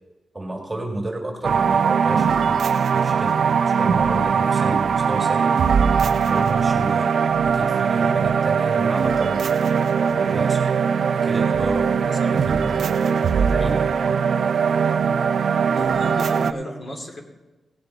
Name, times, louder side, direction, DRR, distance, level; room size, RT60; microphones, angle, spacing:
voice 1, 0.3-5.6 6.3-7.1 7.4-9.7 10.1-10.6 11.1-11.9 12.3-13.1 13.4-13.9, right 1 dB, 15° right, 1 dB, 1.8 m, -31 dB
sound 1, 1.4-16.5, right 6 dB, 65° right, 0.5 m, -20 dB
voice 2, 15.7-17.2, equal, 40° left, 1 dB, 2.4 m, -33 dB
17.5 x 6.9 x 4.6 m, 1.1 s
wide cardioid pair, 130°, 0 cm